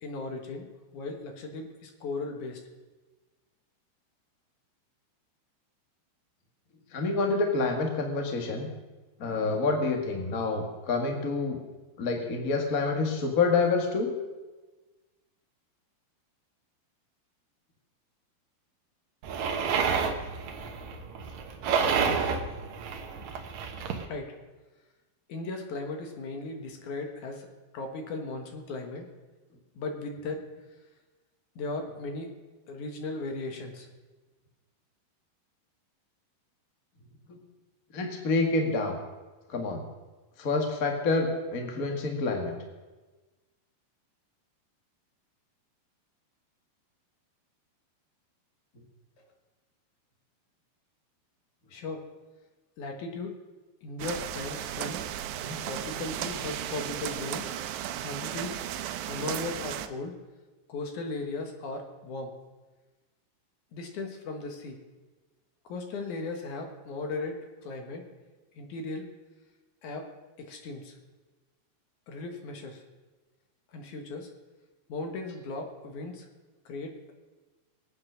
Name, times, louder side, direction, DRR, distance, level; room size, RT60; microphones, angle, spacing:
voice 1, 0.0-0.7 0.9-2.6 24.0-24.3 25.3-27.5 27.7-29.1 29.8-30.4 31.6-32.3 32.7-33.9 51.7-52.0 52.8-53.3 53.8-55.0 55.7-57.5 58.0-58.5 59.1-60.2 60.7-62.3 63.7-64.8 65.7-68.0 68.6-69.1 69.8-70.1 70.4-71.0 72.1-72.8 73.7-74.3 74.9-76.3 76.7-77.1, left 3 dB, 60° left, 4 dB, 2.4 m, -37 dB
voice 2, 6.9-8.7 9.2-11.6 12.0-14.1 37.3-37.4 37.9-39.0 39.5-39.8 40.4-42.5 55.4-55.6, left 3 dB, 80° left, 3 dB, 0.7 m, -27 dB
sound 1, 19.2-24.1, right 6 dB, 65° right, 1.8 m, -30 dB
sound 2, 54.0-59.9, right 11 dB, 85° right, 2.9 m, -35 dB
21.0 x 8.8 x 6.3 m, 1.2 s
omnidirectional pair, 4.9 m